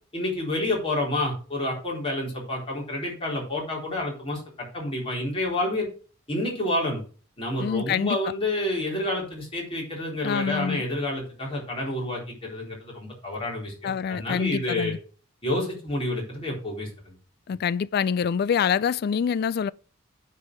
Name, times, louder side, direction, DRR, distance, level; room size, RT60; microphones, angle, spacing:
voice 1, 0.1-5.9 6.3-7.0 7.4-14.9 15.4-17.1, left 1 dB, 30° left, 4.0 m, -29 dB
voice 2, 7.6-8.2 10.2-10.8 13.8-15.0 17.5-19.7, left 7 dB, 55° left, 0.3 m, -25 dB
9.4 x 4.6 x 6.2 m
head